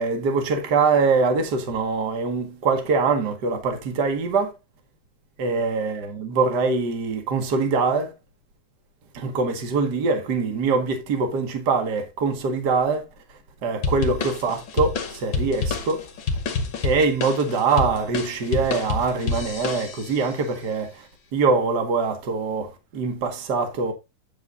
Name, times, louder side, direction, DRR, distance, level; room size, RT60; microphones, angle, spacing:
voice 1, 0.0-4.5 5.4-8.1 9.1-13.0 13.6-16.0 16.8-21.1 21.3-23.9, right 4 dB, 40° right, 1.8 m, -23 dB
sound 1, 13.8-20.3, left 4 dB, 50° left, 1.7 m, -28 dB
9.3 x 7.5 x 2.7 m
omnidirectional pair, 4.0 m